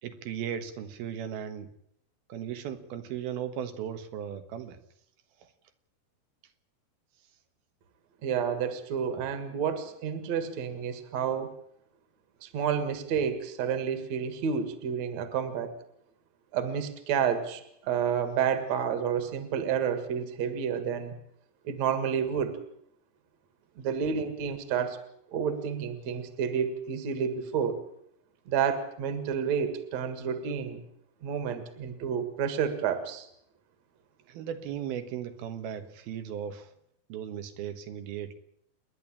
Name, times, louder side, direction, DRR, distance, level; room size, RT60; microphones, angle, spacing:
voice 1, 0.0-1.7 2.3-4.8 5.4-5.5 34.3-36.7 37.1-38.3, right 9 dB, 90° right, 9 dB, 3.4 m, -37 dB
voice 2, 8.2-11.5 12.4-15.7 16.5-21.1 21.6-22.6 23.8-25.0 25.3-27.8 28.5-30.8 31.2-33.3, right 7 dB, 55° right, 10 dB, 2.7 m, -30 dB
28.5 x 11.0 x 8.8 m, 0.73 s
omnidirectional pair, 4.2 m